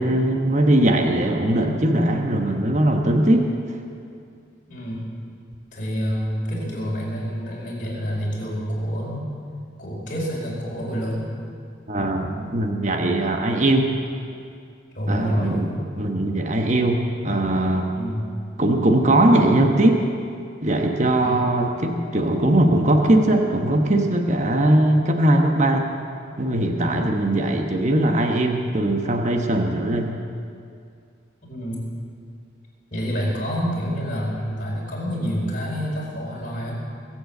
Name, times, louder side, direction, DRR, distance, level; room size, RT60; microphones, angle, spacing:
voice 1, 0.0-3.5 11.9-13.9 15.1-15.7 16.0-17.0 17.2-17.9 18.6-20.0 20.6-25.9 26.4-30.1, right 1 dB, 40° right, 3 dB, 1.1 m, -20 dB
voice 2, 4.7-5.1 5.7-9.3 9.8-11.3 14.9-15.8 17.9-18.3 21.0-21.3 26.8-27.1 31.5-31.8 32.9-36.8, equal, 45° left, -5 dB, 4.9 m, -28 dB
22.0 x 7.8 x 7.8 m, 2.3 s
head